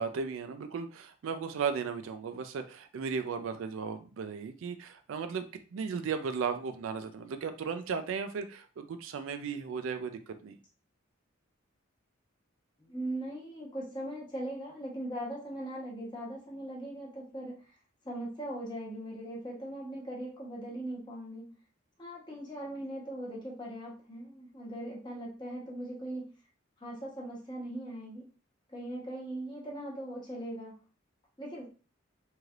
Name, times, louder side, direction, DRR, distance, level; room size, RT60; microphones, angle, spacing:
voice 1, 0.0-10.6, right 6 dB, 70° right, 8 dB, 0.3 m, -36 dB
voice 2, 12.8-17.7 18.0-21.6 22.0-26.3 26.8-28.3 28.7-30.8 31.4-31.7, right 1 dB, 20° left, -4 dB, 1.0 m, -40 dB
3.2 x 2.7 x 2.4 m, 0.37 s
head